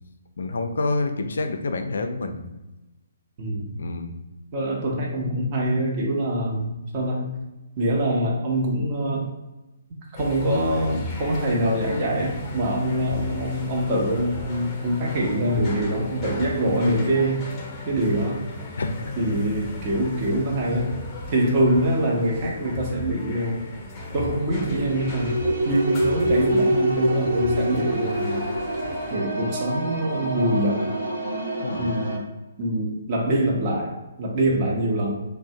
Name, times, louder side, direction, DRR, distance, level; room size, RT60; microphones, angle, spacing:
voice 1, 0.4-2.5 3.7-4.1 18.8-19.2 31.6-31.9 34.5-34.8, left 3 dB, 65° left, 6 dB, 0.3 m, -28 dB
voice 2, 3.4-3.8 4.5-7.3 7.8-9.3 10.1-17.5 17.9-18.5 19.2-21.0 21.3-23.7 24.1-28.5 29.1-30.9 31.8-32.2 32.6-35.2, right 1 dB, 35° right, -2 dB, 0.7 m, -24 dB
sound 1, 10.2-29.2, left 1 dB, 15° left, 0.7 m, -36 dB
sound 2, 24.5-32.2, right 1 dB, 80° right, 0.9 m, -26 dB
2.6 x 2.0 x 2.6 m, 1.0 s
figure-of-eight pair, 130°, 0 cm